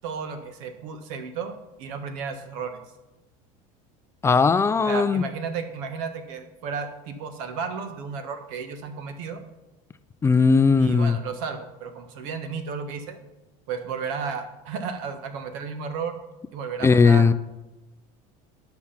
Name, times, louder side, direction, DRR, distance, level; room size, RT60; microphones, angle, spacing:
voice 1, 0.0-1.5 1.8-2.8 4.9-9.4 10.8-13.2 13.7-16.2 16.5-17.3, right 5 dB, 75° right, 8 dB, 1.4 m, -33 dB
voice 2, 4.2-5.2 10.2-11.2 16.8-17.3, left 5 dB, 15° left, 13 dB, 0.4 m, -18 dB
11.0 x 6.0 x 5.7 m, 1.0 s
supercardioid pair, 125°, 17 cm